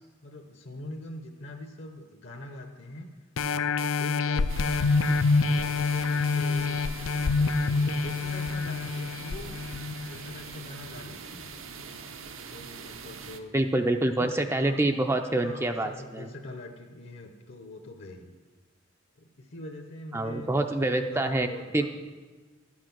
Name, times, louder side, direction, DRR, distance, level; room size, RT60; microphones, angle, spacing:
voice 1, 0.2-3.1 3.5-5.1 5.5-6.8 7.2-9.5 10.1-11.5 12.5-13.5 14.0-14.8 15.3-18.3 19.2-21.9, left 1 dB, 65° left, 3 dB, 0.9 m, -43 dB
sound 1, 3.4-10.5 11.1-11.2, left 4 dB, 85° left, 0.5 m, -26 dB
sound 2, 4.5-13.4, right 6 dB, 80° right, 0.8 m, -43 dB
voice 2, 13.5-16.3 20.1-21.5 21.7-21.9, right 2 dB, 15° right, 6 dB, 0.4 m, -26 dB
12.0 x 7.6 x 6.0 m, 1.4 s
head